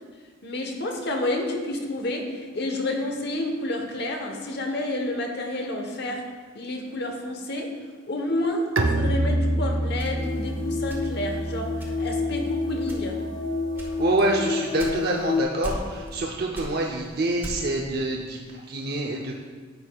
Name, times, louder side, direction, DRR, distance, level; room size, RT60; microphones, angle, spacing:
voice 1, 0.4-6.2 6.5-13.2, left 1 dB, 55° left, 3 dB, 1.1 m, -29 dB
Bowed string instrument, 8.8-14.3, right 1 dB, 90° right, 0.7 m, -28 dB
sound 1, 10.0-11.4 11.8-12.3 12.8-13.3 13.8-15.3 15.6-16.2 16.5-17.8, equal, 10° right, 1.3 m, -38 dB
sound 2, 10.1-15.4, left 4 dB, 75° left, 1.6 m, -30 dB
voice 2, 14.0-19.3, right 2 dB, 55° right, -1 dB, 0.7 m, -26 dB
10.5 x 7.8 x 2.3 m, 1.5 s
head